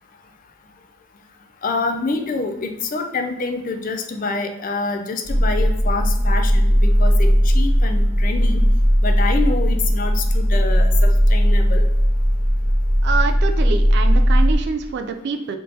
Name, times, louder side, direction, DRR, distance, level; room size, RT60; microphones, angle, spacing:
voice 1, 1.6-8.6 9.0-11.9, left 3 dB, 40° left, 6 dB, 0.4 m, -26 dB
sound 1, 5.2-14.6, equal, 25° right, 1.1 m, -17 dB
voice 2, 13.0-15.6, right 5 dB, 50° right, 7 dB, 0.3 m, -25 dB
4.1 x 3.6 x 2.7 m, 0.94 s
head